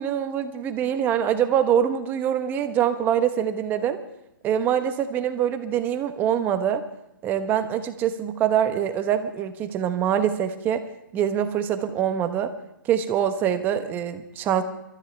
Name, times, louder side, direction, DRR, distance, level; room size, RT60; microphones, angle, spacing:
voice 1, 0.0-4.0 4.4-6.9 7.2-10.8 11.1-12.5 12.9-14.6, right 9 dB, 15° right, 8 dB, 1.0 m, -24 dB
25.5 x 13.5 x 3.3 m, 0.84 s
hypercardioid pair, 150°, 11 cm